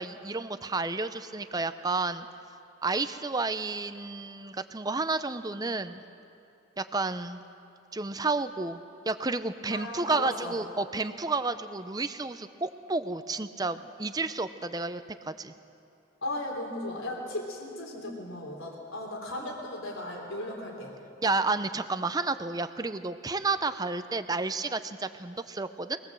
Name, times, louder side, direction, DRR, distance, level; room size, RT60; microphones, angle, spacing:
voice 1, 0.0-2.3 2.8-6.0 6.8-7.4 7.9-8.8 9.1-15.5 21.2-26.0, right 3 dB, 20° right, 11 dB, 0.6 m, -31 dB
voice 2, 9.7-10.5 16.2-20.9, left 1 dB, 80° left, 0 dB, 3.7 m, -36 dB
23.0 x 18.5 x 7.7 m, 2.8 s
head